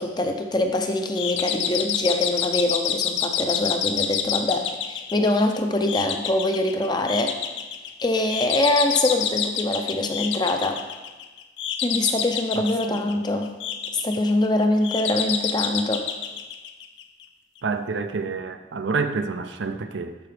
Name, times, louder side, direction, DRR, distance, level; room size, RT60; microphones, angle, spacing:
voice 1, 0.0-7.3 8.0-10.8 11.8-13.5 13.9-16.0, left 2 dB, 25° left, 5 dB, 0.5 m, -24 dB
sound 1, 1.1-17.2, left 8 dB, 70° left, 0.5 m, -28 dB
voice 2, 12.9-13.2 17.6-20.2, right 4 dB, 75° right, 8 dB, 0.5 m, -28 dB
12.5 x 4.8 x 3.3 m, 1.2 s
head